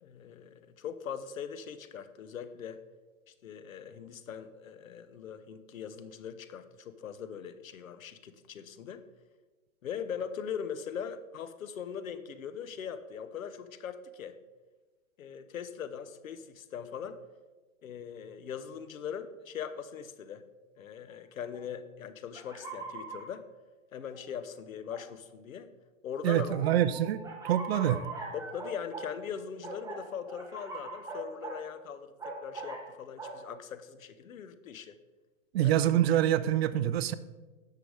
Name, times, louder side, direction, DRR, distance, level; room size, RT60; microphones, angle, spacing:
voice 1, 0.0-2.8 3.3-9.0 9.8-14.4 15.2-17.2 17.8-20.4 20.8-23.4 23.9-25.7 26.0-26.8 28.3-35.0 35.6-35.7, left 7 dB, 80° left, 12 dB, 1.0 m, -41 dB
sound 1, 21.5-21.6 22.3-23.2 24.1-24.2 24.9-25.0 26.5-29.1 29.6-31.6 32.2-32.8 33.2-33.4, right 3 dB, 10° right, 1.6 m, -41 dB
voice 2, 26.2-28.0 35.5-37.1, right 11 dB, 50° right, 15 dB, 0.6 m, -26 dB
10.5 x 6.7 x 4.9 m, 1.3 s
hypercardioid pair, 135°, 40 cm